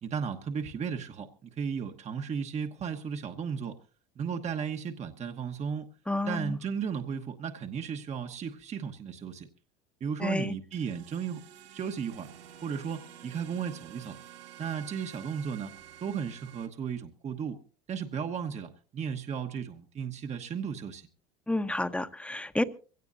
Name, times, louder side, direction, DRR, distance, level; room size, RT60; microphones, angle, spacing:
voice 1, 0.0-3.8 4.2-5.9 6.3-9.5 10.0-11.4 11.7-12.3 12.6-14.2 14.6-15.7 16.0-17.6 17.9-21.1, right 7 dB, 35° right, 6 dB, 1.2 m, -35 dB
voice 2, 6.1-6.6 10.2-10.5 21.5-22.6, left 1 dB, 5° left, 11 dB, 1.0 m, -30 dB
sound 1, 10.7-16.7, right 11 dB, 65° right, 1.9 m, -50 dB
22.5 x 17.0 x 2.7 m, 0.37 s
supercardioid pair, 105°, 20 cm